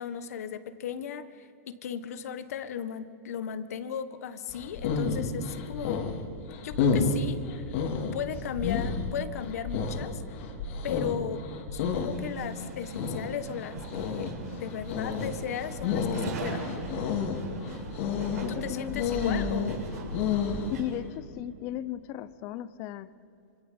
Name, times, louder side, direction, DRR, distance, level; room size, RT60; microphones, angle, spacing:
voice 1, 0.0-6.1 6.6-7.6 8.1-10.2 10.8-11.4 11.7-16.7 18.5-19.7, left 8 dB, 70° left, 12 dB, 1.5 m, -36 dB
sound 1, 4.5-20.7, left 5 dB, 50° left, 2.9 m, -31 dB
sound 2, 12.1-21.0, right 3 dB, 85° right, 6.6 m, -42 dB
voice 2, 18.4-19.0 20.7-23.1, left 12 dB, 35° left, 16 dB, 0.8 m, -36 dB
26.5 x 26.5 x 5.3 m, 2.5 s
hypercardioid pair, 150°, 9 cm